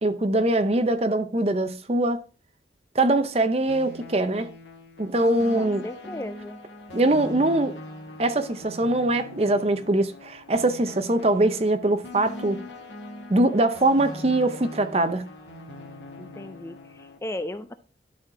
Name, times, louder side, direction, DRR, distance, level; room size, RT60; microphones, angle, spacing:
voice 1, 0.0-2.2 2.9-4.5 5.0-5.8 6.9-7.8 8.2-12.6 13.3-15.3, right 2 dB, 35° right, 0.6 m, -22 dB
sound 1, 3.7-17.2, left 1 dB, 85° left, 1.9 m, -41 dB
voice 2, 5.6-6.6 16.2-17.7, left 1 dB, 15° left, 0.4 m, -36 dB
12.0 x 4.3 x 3.7 m
head